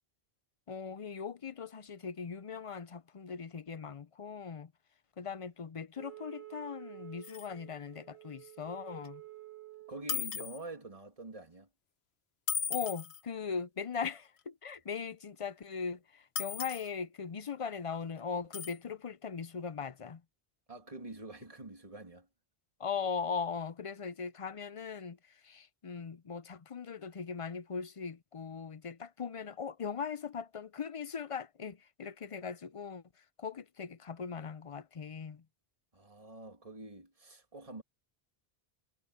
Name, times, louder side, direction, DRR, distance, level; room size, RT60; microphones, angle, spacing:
voice 1, 0.7-4.7 5.2-9.2 12.7-20.2 22.8-35.4, left 6 dB, 40° left, 0.5 m, -39 dB
Wind instrument woodwind instrument, 6.0-10.1, right 16 dB, 70° right, 3.1 m, -51 dB
sound 1, 7.2-7.5 9.1-9.2 10.1-10.6 12.5-13.2 16.4-16.9 18.5-18.8, left 8 dB, 80° left, 1.3 m, -36 dB
voice 2, 9.9-11.7 20.7-22.3 35.9-37.8, right 2 dB, 35° right, 2.9 m, -46 dB
omnidirectional pair, 1.1 m